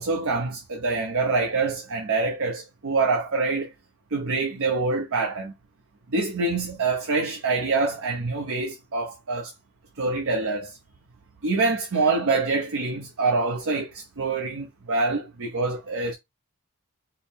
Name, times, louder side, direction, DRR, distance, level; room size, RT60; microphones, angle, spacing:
voice 1, 0.0-3.7 4.1-5.5 6.1-9.5 10.0-10.8 11.4-16.1, right 3 dB, 65° right, 0.7 m, -25 dB
4.6 x 2.1 x 3.5 m
head